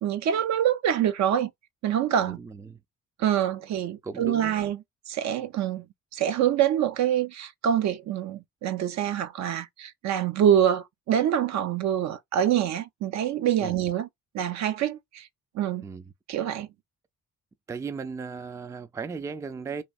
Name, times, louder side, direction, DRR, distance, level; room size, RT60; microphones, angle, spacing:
voice 1, 0.0-1.5 1.8-2.4 3.2-4.8 5.1-5.8 6.1-14.1 14.3-15.3 15.5-15.9 16.3-16.7, right 10 dB, 65° right, 0.5 m, -25 dB
voice 2, 2.2-2.8 4.0-4.6 13.6-13.8 15.8-16.1 17.7-19.8, right 5 dB, 10° right, 0.3 m, -36 dB
3.0 x 2.6 x 2.3 m
cardioid pair, 90°, 30 cm